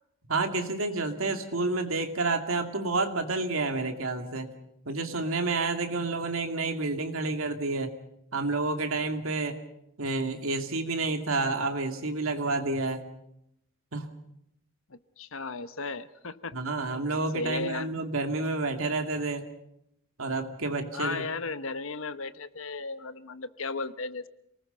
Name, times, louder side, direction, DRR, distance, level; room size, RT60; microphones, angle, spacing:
voice 1, 0.3-4.5 4.9-7.9 8.3-9.6 10.0-13.0 13.9-14.1 16.5-19.4 20.2-21.3, right 3 dB, 85° right, 6 dB, 2.4 m, -29 dB
voice 2, 14.9-16.6 17.3-17.9 20.9-24.3, left 4 dB, 75° left, 13 dB, 1.0 m, -35 dB
27.5 x 19.5 x 5.7 m, 0.78 s
head